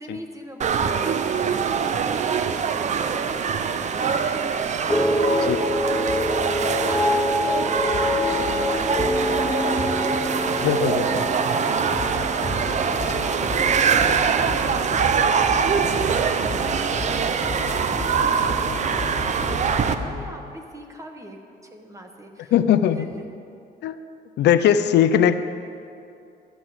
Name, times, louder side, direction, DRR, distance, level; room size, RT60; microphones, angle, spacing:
voice 1, 0.0-6.1 6.4-11.2 12.6-22.5 23.0-23.1, equal, 15° right, 4 dB, 1.3 m, -41 dB
sound 1, 0.6-19.9, right 6 dB, 40° right, 0.6 m, -23 dB
sound 2, 4.9-15.3 15.5-16.1, left 2 dB, 5° left, 0.6 m, -26 dB
voice 2, 10.6-11.3 15.8-15.9 22.5-23.0 23.8-24.0 24.4-25.4, left 9 dB, 75° left, 11 dB, 0.5 m, -19 dB
sound 3, 11.9-20.4, left 4 dB, 40° left, 1.6 m, -34 dB
13.0 x 6.0 x 7.8 m, 2.5 s
cardioid pair, 115°, 18 cm